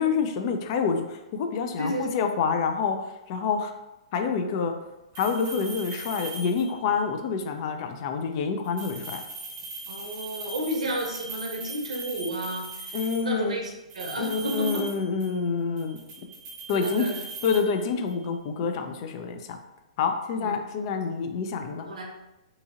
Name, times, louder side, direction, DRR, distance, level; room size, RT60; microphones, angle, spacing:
voice 1, 0.0-3.0 3.3-3.7 4.1-4.7 5.2-9.2 12.9-13.6 14.2-16.0 16.7-17.1 17.4-19.6 20.0-21.9, left 5 dB, 45° left, 6 dB, 0.4 m, -27 dB
voice 2, 1.8-2.1 9.9-14.9 16.7-17.2 20.4-20.5 21.9-22.0, right 1 dB, 80° right, 1 dB, 0.6 m, -32 dB
sound 1, 5.1-6.9 8.6-13.4 13.9-15.5 15.8-18.2, right 3 dB, 30° right, 0.7 m, -40 dB
2.8 x 2.7 x 2.4 m, 0.97 s
hypercardioid pair, 125°, 4 cm